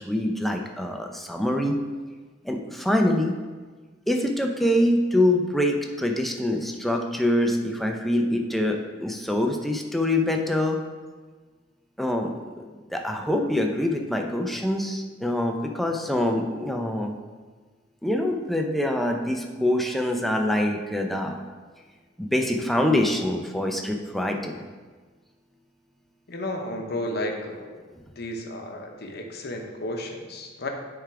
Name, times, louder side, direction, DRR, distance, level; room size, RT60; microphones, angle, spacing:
voice 1, 0.0-1.7 2.4-3.3 4.1-10.8 12.0-17.1 18.0-21.4 22.2-24.6, left 1 dB, ahead, 2 dB, 0.5 m, -25 dB
voice 2, 26.3-27.7 28.2-30.7, left 1 dB, 55° left, 3 dB, 0.9 m, -32 dB
9.1 x 3.5 x 4.8 m, 1.4 s
head